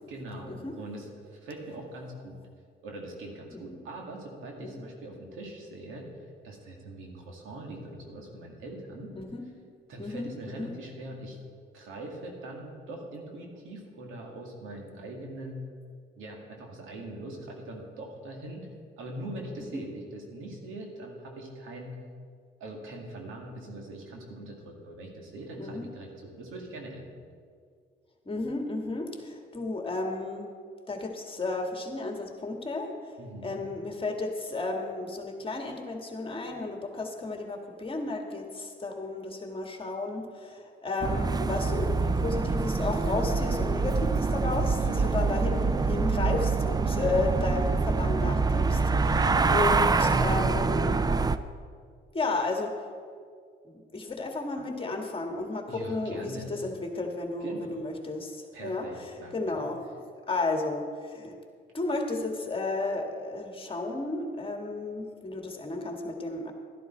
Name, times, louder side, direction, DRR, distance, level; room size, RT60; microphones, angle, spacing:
voice 1, 0.1-2.4 2.8-6.1 6.4-9.1 9.9-11.4 11.7-15.7 16.2-18.7 19.0-22.0 22.6-27.2 33.2-33.6 44.7-45.1 55.7-56.5 57.4-57.9 58.5-59.6, right 1 dB, 85° right, 0 dB, 2.3 m, -42 dB
voice 2, 10.0-10.7 19.6-19.8 25.6-25.9 28.3-30.5 30.9-51.0 52.1-52.7 53.6-59.8 60.3-61.3 61.7-66.5, left 3 dB, 25° left, 2 dB, 1.8 m, -33 dB
sound 1, 41.0-51.4, right 4 dB, 20° right, 0.4 m, -25 dB
12.0 x 11.5 x 4.5 m, 2.1 s
cardioid pair, 90°, 20 cm